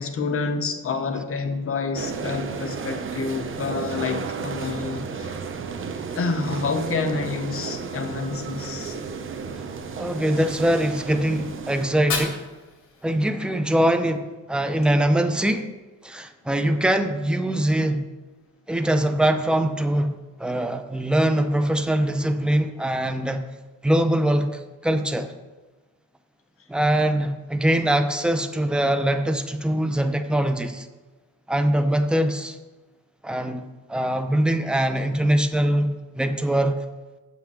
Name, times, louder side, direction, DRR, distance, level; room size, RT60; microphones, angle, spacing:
voice 1, 0.0-5.4 6.1-9.0 24.9-25.0, left 4 dB, 45° left, 1.1 m, -28 dB
sound 1, 1.9-11.9, right 5 dB, 40° right, 0.8 m, -33 dB
voice 2, 10.0-12.4 13.0-15.6 16.0-18.0 18.7-20.1 20.4-23.4 23.8-25.3 26.7-30.9 31.5-32.6 33.2-36.8, right 1 dB, 5° right, 0.7 m, -22 dB
Fire, 11.8-13.8, left 5 dB, 65° left, 2.6 m, -33 dB
7.5 x 5.9 x 7.0 m
cardioid pair, 110°, 32 cm